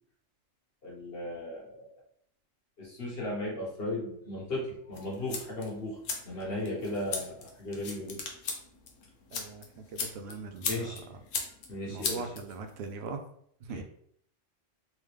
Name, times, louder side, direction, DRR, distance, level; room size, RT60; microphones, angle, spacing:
voice 1, 0.8-1.9 2.8-6.0 6.2-8.2 10.7-11.0 11.7-12.3 13.7-13.8, left 1 dB, 50° left, -4 dB, 1.5 m, -36 dB
sound 1, 4.9-12.9, left 5 dB, 85° left, 1.1 m, -39 dB
voice 2, 9.3-9.6 9.9-10.7 11.9-13.2 13.7-13.8, right 4 dB, 65° right, 6 dB, 0.8 m, -40 dB
3.5 x 3.1 x 3.3 m, 0.67 s
omnidirectional pair, 1.3 m